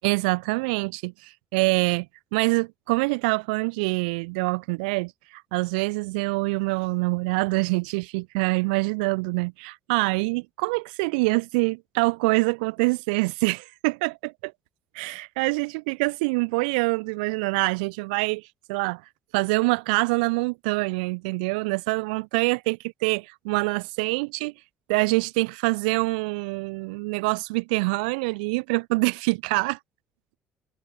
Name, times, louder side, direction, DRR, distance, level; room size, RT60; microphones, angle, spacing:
voice 1, 0.0-2.1 2.3-14.5 14.9-19.0 19.3-24.5 24.9-29.8, right 28 dB, 85° right, 2.4 m, -25 dB
hypercardioid pair, 65°, 5 cm